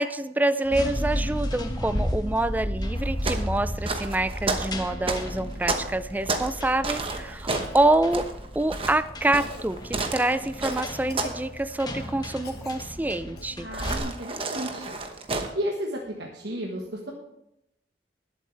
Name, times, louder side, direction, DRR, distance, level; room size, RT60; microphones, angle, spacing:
voice 1, 0.0-8.3 8.6-13.7, right 2 dB, 10° right, 13 dB, 0.4 m, -26 dB
sound 1, 0.6-14.0, equal, 25° left, 1.2 m, -33 dB
sound 2, 3.0-6.6 6.8-11.5 11.7-12.1 13.7-15.5, right 3 dB, 30° right, 1.0 m, -31 dB
Cough, 6.5-6.7 7.6-8.4 9.4-9.7 10.6-11.8 12.4-12.8 13.4-13.5 15.3-15.4, left 3 dB, 60° left, 1.4 m, -45 dB
voice 2, 13.6-14.9 15.5-17.1, equal, 65° right, -1 dB, 1.4 m, -33 dB
19.5 x 7.7 x 3.3 m, 0.83 s
head